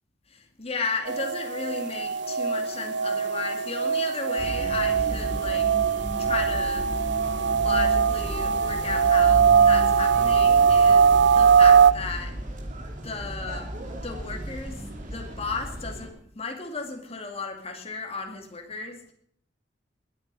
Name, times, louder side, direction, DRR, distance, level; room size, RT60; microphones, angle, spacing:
voice 1, 0.3-5.7 6.2-6.9 7.5-12.4 12.9-19.0, left 4 dB, 35° left, 4 dB, 2.2 m, -34 dB
sound 1, 1.1-11.9, right 6 dB, 65° right, 0.6 m, -21 dB
sound 2, 4.4-16.1, equal, 45° right, 2.9 m, -34 dB
21.0 x 9.2 x 5.4 m, 0.67 s
head